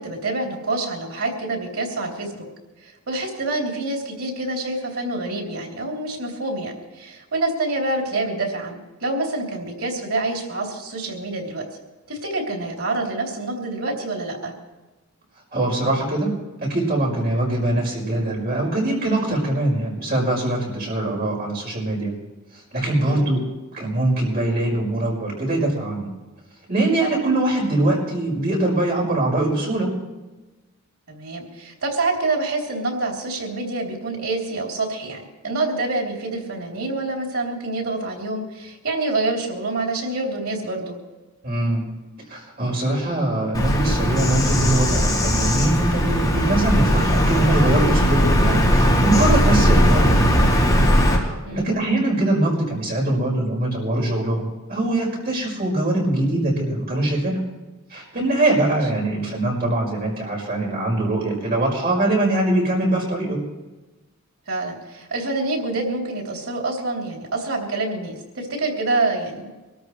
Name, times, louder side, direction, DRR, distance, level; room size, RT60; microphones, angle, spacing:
voice 1, 0.0-2.4 2.8-11.6 12.1-14.5 23.0-23.3 31.1-41.0 51.5-51.7 58.6-58.8 64.5-69.6, right 2 dB, 90° right, 0 dB, 3.3 m, -27 dB
voice 2, 15.5-16.3 16.6-22.1 22.5-23.4 23.7-26.1 26.7-29.9 41.4-41.9 42.3-50.5 51.1-57.4 57.9-63.4, right 1 dB, 45° right, -3 dB, 5.3 m, -22 dB
Bird vocalization bird call bird song, 43.5-51.2, equal, 20° left, 3.3 m, -18 dB
24.5 x 13.5 x 3.2 m, 1.2 s
head